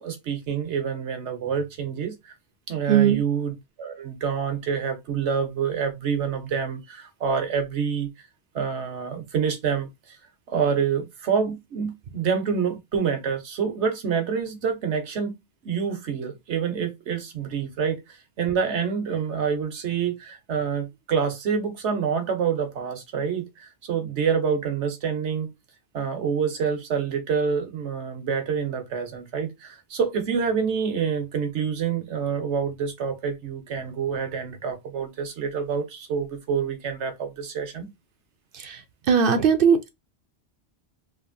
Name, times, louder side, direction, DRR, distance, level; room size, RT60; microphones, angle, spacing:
voice 1, 0.0-2.3 2.7-8.1 8.5-10.2 10.5-15.3 15.6-18.0 18.4-25.5 25.9-37.9, right 6 dB, 80° right, 1.2 m, -27 dB
voice 2, 2.9-3.2 38.5-38.8 39.1-39.9, right 7 dB, 60° right, 0.7 m, -19 dB
3.5 x 2.6 x 2.5 m
omnidirectional pair, 1.1 m